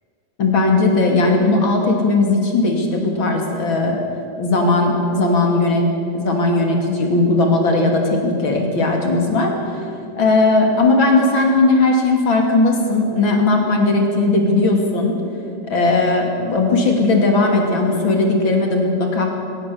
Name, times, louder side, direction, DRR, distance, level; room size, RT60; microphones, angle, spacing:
voice 1, 0.4-4.0 4.4-5.8 6.1-9.9 10.2-15.2 15.7-19.2, left 2 dB, 40° left, 2 dB, 3.0 m, -17 dB
21.5 x 17.5 x 7.0 m, 2.5 s
omnidirectional pair, 3.8 m